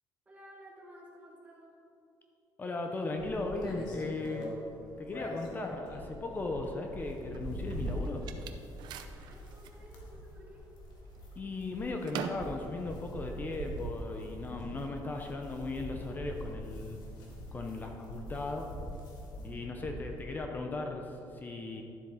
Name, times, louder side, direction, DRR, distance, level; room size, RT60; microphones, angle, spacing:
voice 1, 0.3-1.8 9.1-10.6 19.3-19.8, right 1 dB, 15° right, -5 dB, 2.2 m, -54 dB
voice 2, 2.6-4.5 5.0-8.2 11.4-17.0 17.5-18.7 19.4-21.8, left 2 dB, 25° left, 3 dB, 0.7 m, -37 dB
sound 1, 3.2-20.4, equal, 65° left, 2.0 m, -44 dB
sound 2, 7.1-9.8 10.3-10.9 11.2-14.0, right 7 dB, 70° right, 0.6 m, -43 dB
12.0 x 7.4 x 3.7 m, 2.8 s
cardioid pair, 145°, 8 cm